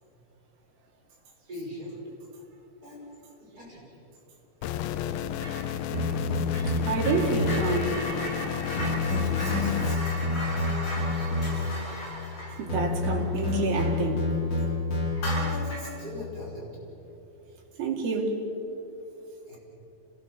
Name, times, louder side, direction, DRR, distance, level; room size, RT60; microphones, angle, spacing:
voice 1, 1.5-1.9 2.8-3.0 3.4-4.0 8.9-10.3 10.6-11.7 15.3-16.7 19.5-19.6, left 1 dB, 25° right, -5 dB, 6.1 m, -41 dB
sound 1, 4.6-10.0, left 10 dB, 90° left, 2.6 m, -32 dB
sound 2, 5.3-5.7 5.9-14.1 14.5-14.6 15.1-16.0, equal, 50° left, 8.6 m, -37 dB
sound 3, 5.9-7.8 8.8-11.9 12.7-15.9, left 2 dB, 30° left, 4.1 m, -28 dB
voice 2, 6.9-7.9 12.6-14.3 17.8-18.4, right 4 dB, 85° right, 0 dB, 4.2 m, -28 dB
26.5 x 19.0 x 6.7 m, 2.9 s
omnidirectional pair, 4.1 m